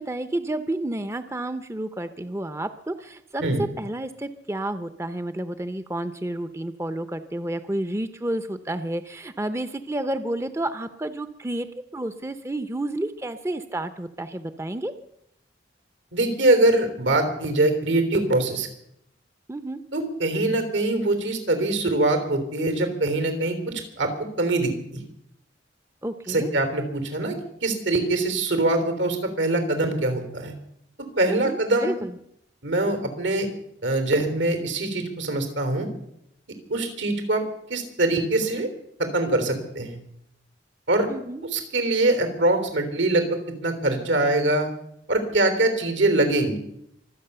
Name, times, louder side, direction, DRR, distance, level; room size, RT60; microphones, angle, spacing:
voice 1, 0.0-11.7 11.9-14.9 19.5-19.8 26.0-26.5 31.3-32.2 41.1-41.4, right 1 dB, 15° right, 11 dB, 0.6 m, -30 dB
voice 2, 16.1-18.7 19.9-24.1 24.4-25.0 26.3-30.5 31.0-32.0 32.6-33.5 33.8-35.9 36.7-37.4 37.7-38.7 39.0-40.0 40.9-41.1 41.5-44.7 45.1-46.6, right 2 dB, 85° right, 7 dB, 3.5 m, -23 dB
24.5 x 8.5 x 6.8 m, 0.75 s
head